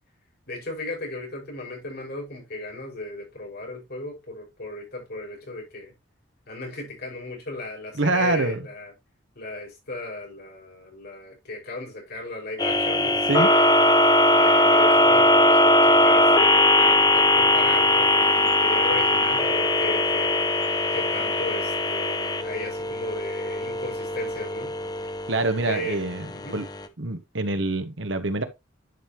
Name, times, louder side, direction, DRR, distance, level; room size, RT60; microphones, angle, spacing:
voice 1, 0.5-5.9 6.5-8.9 9.4-13.7 14.3-20.4 20.9-24.7 25.7-26.0 26.3-26.6, left 2 dB, 55° left, 5.6 m, -35 dB
voice 2, 8.0-8.7 13.3-13.5 25.3-26.2 26.5-26.7 27.0-28.4, right 2 dB, 65° right, 1.4 m, -25 dB
sound 1, 12.6-26.8, left 1 dB, 20° left, 0.8 m, -20 dB
11.0 x 5.5 x 2.9 m
head